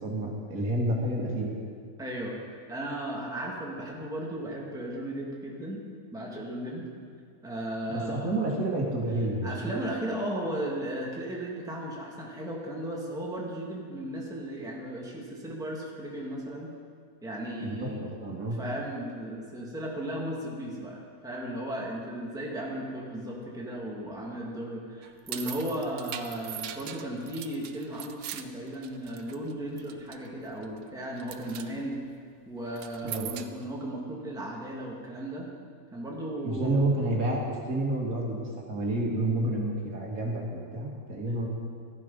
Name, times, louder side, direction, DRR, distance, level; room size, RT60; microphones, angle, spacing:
voice 1, 0.0-1.6 7.9-9.7 17.6-18.6 33.0-33.3 36.4-40.4 40.7-41.5, right 1 dB, 60° right, -2 dB, 2.3 m, -29 dB
voice 2, 2.0-2.4 2.7-5.8 6.1-6.8 7.4-8.3 9.4-16.7 17.2-18.0 18.6-32.0 32.4-35.5 35.9-36.8, right 1 dB, ahead, -3 dB, 1.6 m, -35 dB
sound 1, 25.0-29.5 29.8-30.3 30.6-30.9 31.2-31.7 32.7-33.6, right 10 dB, 85° right, 1.3 m, -40 dB
14.0 x 11.0 x 5.3 m, 2.1 s
omnidirectional pair, 1.7 m